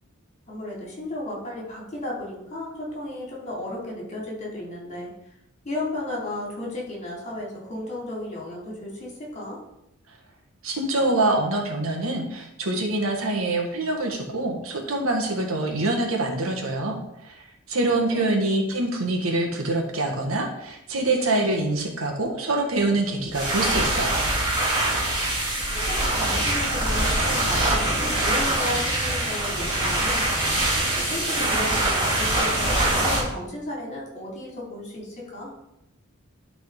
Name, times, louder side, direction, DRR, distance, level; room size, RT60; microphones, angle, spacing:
voice 1, 0.5-5.1 5.6-9.6 18.0-18.4 25.7-30.3 30.9-35.5, left 1 dB, 35° left, -3 dB, 2.9 m, -34 dB
voice 2, 10.6-24.2, right 2 dB, 85° right, 1 dB, 1.6 m, -25 dB
sound 1, 23.3-33.2, right 1 dB, 20° right, 3.1 m, -23 dB
12.0 x 4.1 x 4.0 m, 0.85 s
head